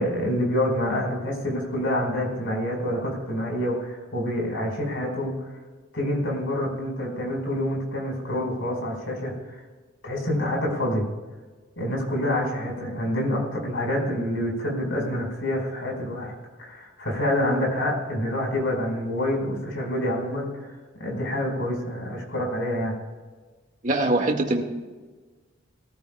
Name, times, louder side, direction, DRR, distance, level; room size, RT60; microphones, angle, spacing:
voice 1, 0.0-5.3 5.9-9.6 10.0-11.1 11.8-16.3 16.6-20.7 21.0-23.0, left 1 dB, 65° left, 0 dB, 4.9 m, -27 dB
voice 2, 23.8-24.6, right 2 dB, 40° right, 2 dB, 1.9 m, -22 dB
21.0 x 14.5 x 2.3 m, 1.3 s
head